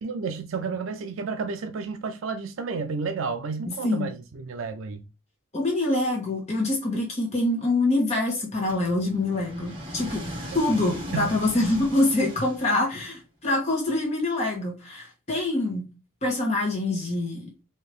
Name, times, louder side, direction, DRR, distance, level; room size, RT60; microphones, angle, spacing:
voice 1, 0.0-5.0 11.1-11.3, right 4 dB, 80° right, 0.4 m, -31 dB
voice 2, 3.6-4.1 5.5-10.2 10.5-15.9 16.2-17.5, left 2 dB, 30° left, 1.2 m, -25 dB
sound 1, 8.7-13.1, equal, 20° right, 2.0 m, -38 dB
4.4 x 2.7 x 3.2 m
head